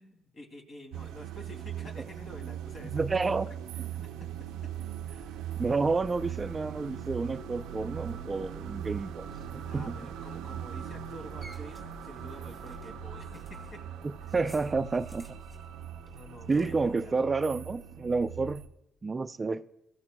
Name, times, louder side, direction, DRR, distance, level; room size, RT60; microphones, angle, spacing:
voice 1, 0.0-3.4 4.2-4.7 5.1-5.4 9.6-13.8 14.2-14.3 16.1-17.2, left 1 dB, 50° left, 2.6 m, -49 dB
sound 1, 0.9-18.7, right 10 dB, 90° right, 0.5 m, -40 dB
voice 2, 2.9-3.5 5.6-9.3 9.5-10.1 14.3-15.2 16.5-18.6 19.0-19.6, right 4 dB, 30° right, 0.4 m, -30 dB
sound 2, 4.5-16.7, equal, 30° left, 2.9 m, -52 dB
22.0 x 14.5 x 2.2 m
supercardioid pair, 70°, 0 cm